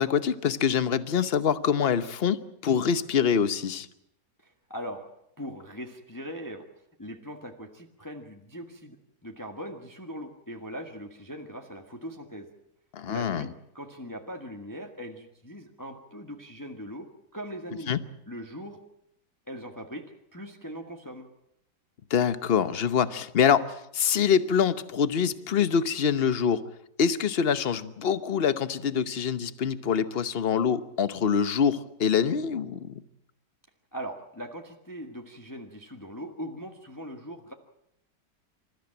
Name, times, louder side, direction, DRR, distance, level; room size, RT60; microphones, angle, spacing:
voice 1, 0.0-2.4 2.6-3.9 12.9-13.5 17.9-18.0 22.1-23.7 23.9-26.6 27.0-32.9, left 7 dB, 40° left, 13 dB, 1.0 m, -25 dB
voice 2, 4.4-5.1 5.4-6.7 7.0-9.0 9.2-12.5 13.1-18.0 18.3-18.8 19.5-21.3 33.9-37.5, equal, 10° left, 3 dB, 1.6 m, -40 dB
27.0 x 14.0 x 8.9 m, 0.77 s
omnidirectional pair, 1.9 m